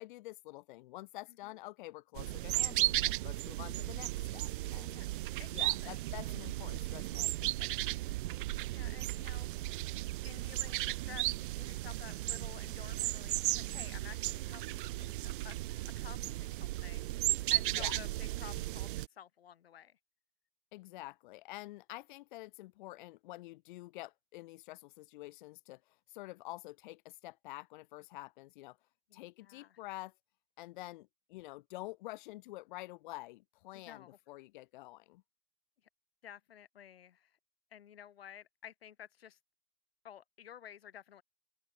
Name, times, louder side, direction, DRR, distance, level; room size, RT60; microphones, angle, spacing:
voice 1, 0.0-5.0 5.5-7.7 17.7-17.9 20.7-28.8 29.1-30.1 30.6-35.2, left 19 dB, 50° left, 1.5 m, -48 dB
sound 1, 2.2-19.1, right 17 dB, 55° right, 1.0 m, -35 dB
voice 2, 5.4-6.0 8.7-9.5 10.2-20.0 29.1-29.8 33.7-34.2 36.2-37.4 37.7-39.4 40.0-41.2, left 10 dB, 70° left, 5.8 m, -53 dB
open air
figure-of-eight pair, 105°, 31 cm